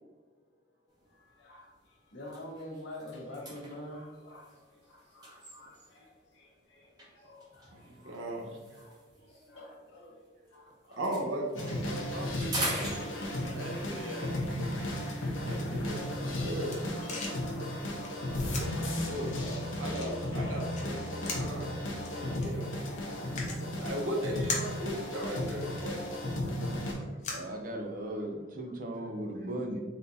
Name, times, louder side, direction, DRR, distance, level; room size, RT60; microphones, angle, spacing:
sound 1, 1.0-1.3 1.7-1.8 2.2-6.1 7.0-10.5 10.8-13.7, right 1 dB, 20° right, 1.2 m, -42 dB
voice 1, 1.4-1.7 2.1-7.8 8.0-8.2 8.8-8.9 9.3-10.2 10.5-11.0 11.9-13.8 14.6-14.8 16.0-16.1 17.0-19.1 20.4-20.6 21.9-22.9 23.1-23.2 23.7-23.9 25.6-25.8 26.1-27.0 29.0-29.1, left 1 dB, 65° left, -3 dB, 1.3 m, -49 dB
voice 2, 7.7-8.6 11.0-14.4 15.4-16.8 19.0-21.7 22.1-22.7 23.8-26.0, right 1 dB, 90° right, 0 dB, 1.0 m, -38 dB
sound 2, 11.5-26.9, left 1 dB, 85° left, 1.0 m, -34 dB
sound 3, 16.8-28.2, left 3 dB, 35° left, 0.8 m, -44 dB
voice 3, 27.3-29.8, right 1 dB, 45° right, 3 dB, 0.6 m, -37 dB
4.2 x 3.9 x 2.7 m, 1.4 s
head